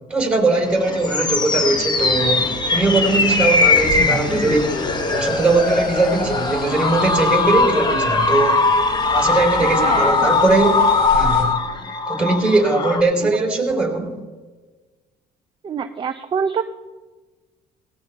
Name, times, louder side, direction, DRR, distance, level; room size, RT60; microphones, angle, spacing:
voice 1, 0.1-4.8 5.1-8.6 9.1-10.8 11.1-11.5 12.1-14.2, right 3 dB, 5° right, -1 dB, 3.9 m, -20 dB
sound 1, 0.6-13.0, left 4 dB, 25° left, 0.8 m, -20 dB
sound 2, 1.9-11.4, left 1 dB, 70° left, 4.4 m, -33 dB
voice 2, 9.8-10.3 13.2-13.3 15.6-16.6, right 6 dB, 30° right, 8 dB, 0.5 m, -25 dB
18.5 x 17.0 x 2.3 m, 1.3 s
cardioid pair, 110°, 17 cm